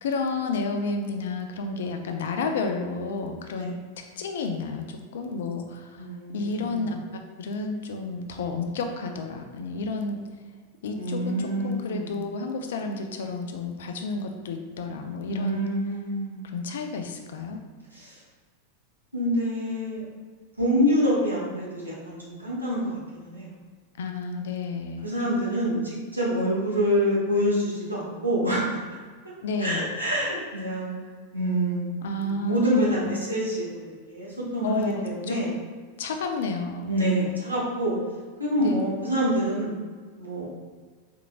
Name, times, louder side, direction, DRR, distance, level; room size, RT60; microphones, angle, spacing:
voice 1, 0.0-3.8 4.2-6.0 6.3-7.0 7.4-10.2 10.8-15.6 16.5-17.6 24.0-25.1 29.4-29.9 32.0-33.2 34.6-35.4 36.0-36.9 38.6-38.9, left 3 dB, 60° left, 4 dB, 0.4 m, -31 dB
voice 2, 6.0-6.9 10.9-12.2 15.3-16.5 17.9-18.2 19.1-20.0 20.6-23.5 25.0-28.8 29.6-30.9 31.3-31.9 32.1-35.6 36.9-38.0 38.4-39.7 40.2-40.5, equal, 85° right, -7 dB, 1.1 m, -26 dB
4.4 x 2.9 x 2.3 m, 1.5 s
figure-of-eight pair, 90°, 0 cm